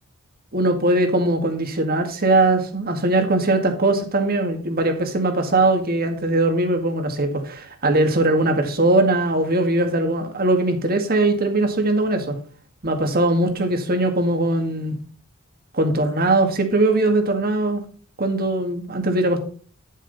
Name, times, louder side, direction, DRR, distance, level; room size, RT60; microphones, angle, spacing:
voice 1, 0.5-12.4 12.8-14.9 15.7-17.8 18.2-19.4, right 2 dB, 45° right, 6 dB, 2.0 m, -20 dB
11.0 x 7.4 x 4.1 m, 0.41 s
head